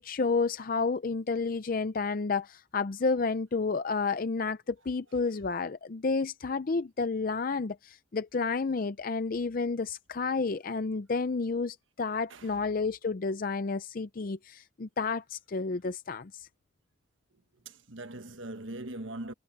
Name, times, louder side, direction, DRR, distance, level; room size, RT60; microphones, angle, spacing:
voice 1, 0.0-16.5, left 4 dB, 45° left, 0.5 m, -31 dB
voice 2, 12.3-12.6 17.6-19.3, right 1 dB, 70° right, 1.4 m, -41 dB
head